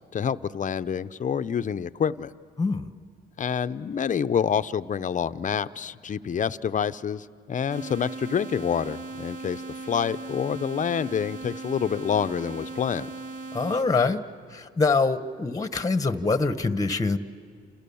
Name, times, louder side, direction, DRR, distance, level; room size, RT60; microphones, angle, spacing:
voice 1, 0.1-2.3 3.4-9.6 9.9-13.1, left 7 dB, 40° left, 13 dB, 0.7 m, -27 dB
voice 2, 2.6-2.9 13.5-14.2 14.5-17.2, left 4 dB, 15° left, 11 dB, 1.1 m, -24 dB
sound 1, 7.7-13.9, right 3 dB, 60° right, 2.3 m, -38 dB
29.0 x 29.0 x 7.1 m, 2.2 s
cardioid pair, 90°, 20 cm